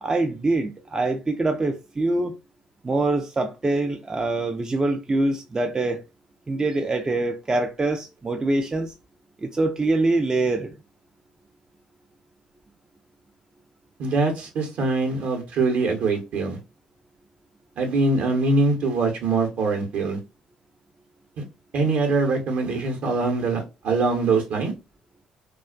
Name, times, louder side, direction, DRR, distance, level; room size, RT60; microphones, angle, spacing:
voice 1, 0.0-2.4 2.8-6.0 6.5-8.9 9.4-10.8, right 2 dB, 25° right, 0.4 m, -24 dB
voice 2, 14.0-16.6 17.8-20.2 21.7-24.7, right 3 dB, 65° right, 0.9 m, -23 dB
2.4 x 2.3 x 2.3 m
hypercardioid pair, 55°, 3 cm